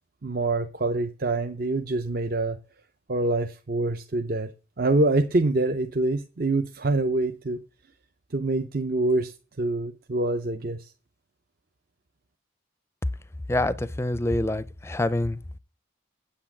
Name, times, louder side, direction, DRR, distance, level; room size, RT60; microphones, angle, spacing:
voice 1, 0.2-2.6 3.1-4.5 4.8-7.6 8.3-10.9, right 2 dB, 50° right, 0.6 m, -25 dB
voice 2, 13.5-15.4, left 1 dB, 15° left, 0.4 m, -26 dB
8.6 x 8.0 x 7.2 m
head